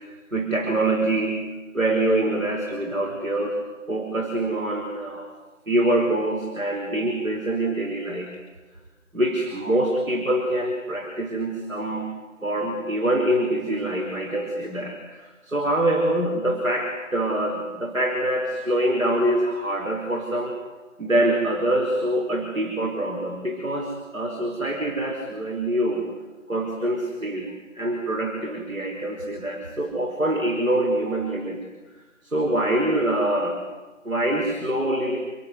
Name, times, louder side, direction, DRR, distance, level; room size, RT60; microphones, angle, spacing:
voice 1, 0.3-1.5 1.7-3.6 3.9-5.3 5.7-8.4 9.1-12.1 12.4-20.6 21.0-26.1 26.5-31.6 32.2-33.6 34.0-35.2, right 1 dB, 80° right, 1 dB, 5.1 m, -25 dB
27.5 x 19.0 x 9.7 m, 1.2 s
figure-of-eight pair, 160°, 39 cm